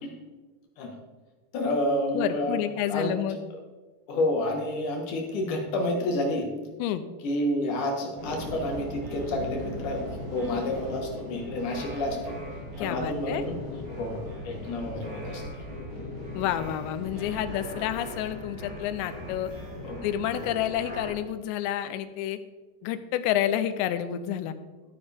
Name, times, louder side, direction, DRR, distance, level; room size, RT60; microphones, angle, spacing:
voice 1, 1.5-2.6 2.9-3.1 4.1-6.5 7.2-10.0 10.3-12.4 12.8-13.5 14.0-15.4 19.8-20.1 20.4-20.5, left 1 dB, 60° left, 1 dB, 2.5 m, -29 dB
voice 2, 2.1-3.4 6.8-7.0 12.8-13.4 16.3-19.5 20.0-22.4 22.8-24.6, left 11 dB, 90° left, 12 dB, 2.9 m, -29 dB
sound 1, 8.2-21.1, left 1 dB, 65° right, 5.5 m, -38 dB
13.5 x 9.4 x 3.5 m, 1.3 s
omnidirectional pair, 5.0 m